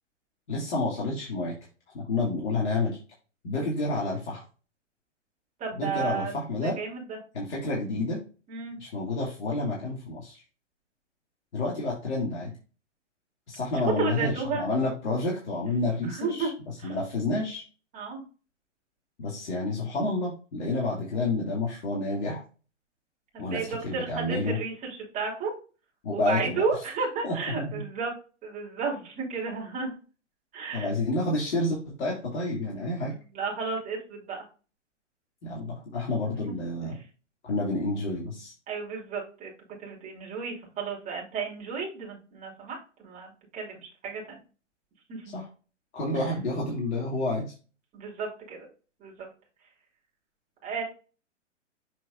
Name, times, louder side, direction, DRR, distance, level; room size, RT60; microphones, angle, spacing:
voice 1, 0.5-1.6 1.9-3.0 3.4-4.4 5.7-6.8 7.3-8.2 8.8-10.4 11.5-12.5 13.5-16.5 16.8-17.6 19.2-22.4 23.4-24.6 26.0-26.6 27.2-27.8 30.7-33.1 35.4-37.0 37.4-38.5 45.3-45.5 45.9-47.5, left 2 dB, 65° left, -4 dB, 2.5 m, -29 dB
voice 2, 5.6-7.2 8.5-8.8 13.7-14.6 16.1-16.5 16.8-17.0 17.9-18.2 23.5-25.5 26.1-28.1 28.4-30.0 30.5-30.9 33.3-34.4 36.5-36.6 38.7-39.5 39.8-44.4 45.1-45.3 46.1-46.3 47.9-48.7 49.0-49.3 50.6-50.8, right 5 dB, 20° right, -3 dB, 3.2 m, -33 dB
7.2 x 5.9 x 2.5 m, 0.35 s
figure-of-eight pair, 125°, 37 cm